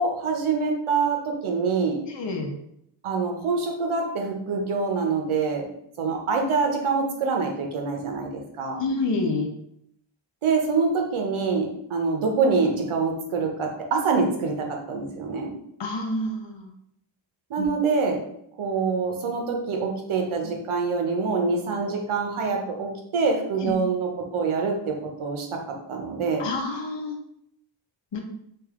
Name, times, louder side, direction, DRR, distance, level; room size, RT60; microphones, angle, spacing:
voice 1, 0.0-2.0 3.0-5.6 6.0-8.8 10.4-14.5 14.9-15.5 17.5-18.2 18.6-24.9 25.2-25.5 25.9-26.5, right 4 dB, 85° right, 2 dB, 0.8 m, -25 dB
voice 2, 2.1-2.6 8.8-9.5 15.8-16.7 17.6-17.7 23.6-23.7 26.4-27.1 28.1-28.2, left 2 dB, 60° left, 2 dB, 0.8 m, -28 dB
3.4 x 2.5 x 3.6 m, 0.73 s
wide cardioid pair, 120°, 48 cm